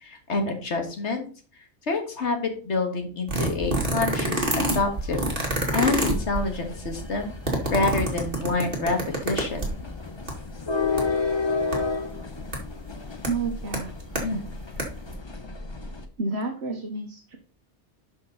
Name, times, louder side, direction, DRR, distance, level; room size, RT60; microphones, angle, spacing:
voice 1, 0.0-1.3 1.9-5.3 5.7-7.3 7.7-9.7 14.2-14.4, left 3 dB, 75° left, 4 dB, 2.0 m, -27 dB
sound 1, 3.3-9.9 10.3-10.4 10.6-11.0 11.7-11.8 12.5-12.6 13.2-13.3 13.7-14.2 14.6-14.8 15.1-15.2, right 1 dB, 50° right, 2.2 m, -26 dB
sound 2, 4.3-16.0, left 4 dB, 25° left, 0.9 m, -33 dB
voice 2, 13.2-14.0 16.2-17.4, right 3 dB, 65° right, 2 dB, 1.5 m, -30 dB
12.0 x 5.3 x 4.0 m, 0.39 s
omnidirectional pair, 1.2 m